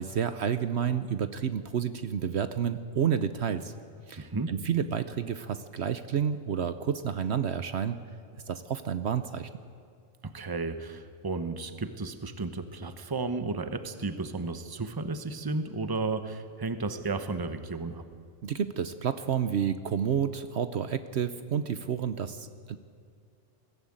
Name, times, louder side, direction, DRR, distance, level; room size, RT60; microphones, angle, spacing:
voice 1, 0.0-3.7 4.1-8.0 8.5-9.5 18.4-22.8, right 8 dB, 65° right, 11 dB, 1.0 m, -30 dB
voice 2, 4.2-4.5 10.2-18.0, right 3 dB, 20° right, 9 dB, 1.0 m, -33 dB
21.5 x 15.5 x 8.8 m, 2.3 s
omnidirectional pair, 1.3 m